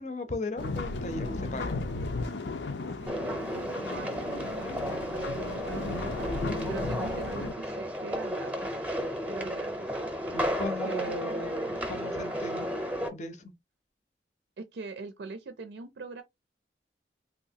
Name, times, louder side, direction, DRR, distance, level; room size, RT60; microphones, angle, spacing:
voice 1, 0.0-1.8 10.3-11.5 11.9-12.7 13.1-13.5, left 2 dB, 40° left, 0.6 m, -37 dB
sound 1, 0.6-7.5, left 3 dB, 85° left, 0.6 m, -35 dB
voice 2, 3.0-8.8 9.3-9.9 10.8-11.8 14.6-16.2, right 4 dB, 75° right, 0.4 m, -42 dB
sound 2, 3.1-13.1, equal, 10° right, 0.7 m, -33 dB
3.4 x 2.7 x 2.7 m
head